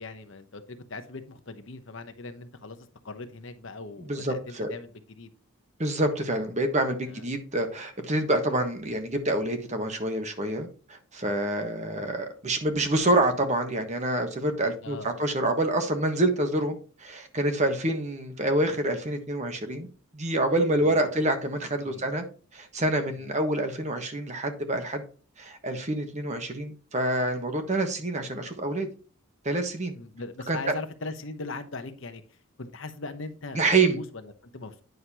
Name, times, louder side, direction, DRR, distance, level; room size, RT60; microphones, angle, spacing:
voice 1, 0.0-5.3 7.1-7.2 14.8-15.3 20.8-21.2 21.8-22.1 29.9-33.6 33.9-34.8, left 3 dB, 60° left, 8 dB, 0.9 m, -40 dB
voice 2, 4.1-4.7 5.8-19.9 20.1-22.2 22.5-25.0 25.4-28.9 29.4-29.9 30.5-30.7 33.5-34.0, right 1 dB, 30° right, 6 dB, 1.2 m, -27 dB
9.3 x 6.5 x 2.9 m, 0.38 s
head